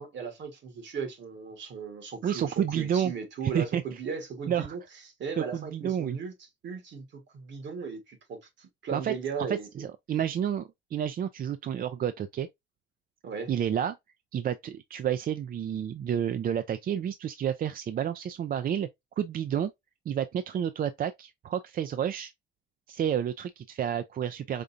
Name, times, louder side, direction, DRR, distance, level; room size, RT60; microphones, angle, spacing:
voice 1, 0.0-4.8 5.2-6.3 6.6-9.8 13.2-13.5, right 5 dB, 65° right, 1.5 m, -37 dB
voice 2, 2.2-3.1 3.5-3.8 4.5-4.8 5.4-6.2 8.9-9.1 9.5-12.5 13.5-14.0 14.3-18.9 19.2-19.7 20.1-22.3 22.9-24.6, right 9 dB, 45° right, 0.4 m, -30 dB
5.1 x 2.3 x 2.6 m
cardioid pair, 90°, 20 cm